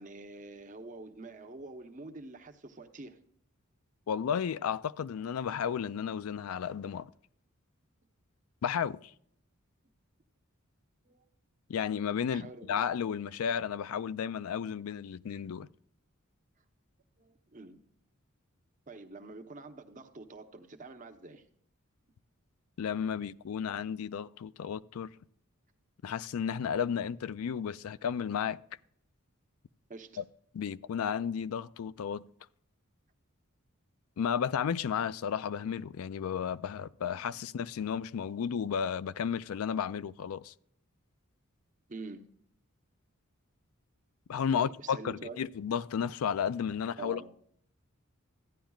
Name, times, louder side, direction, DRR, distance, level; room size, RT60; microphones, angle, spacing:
voice 1, 0.0-3.2 11.0-11.2 12.3-12.8 17.2-17.8 18.9-21.4 29.9-30.2 37.1-37.5 41.9-42.2 44.5-45.4 47.0-47.3, right 3 dB, 35° right, 0.9 m, -46 dB
voice 2, 4.1-7.1 8.6-9.1 11.7-15.7 22.8-25.1 26.0-28.6 30.2-30.3 30.5-32.2 34.2-40.5 44.3-47.3, left 7 dB, 85° left, 0.4 m, -33 dB
14.5 x 10.0 x 2.4 m
head